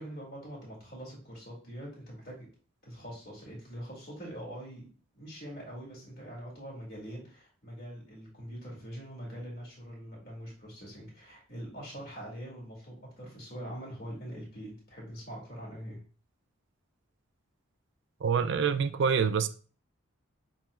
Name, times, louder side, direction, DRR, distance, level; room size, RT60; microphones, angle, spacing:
voice 1, 0.0-2.5 2.8-4.8 5.1-16.0, equal, 45° left, 2.3 m, -43 dB
voice 2, 18.2-19.5, right 6 dB, 55° right, 0.3 m, -26 dB
7.3 x 3.0 x 2.3 m
head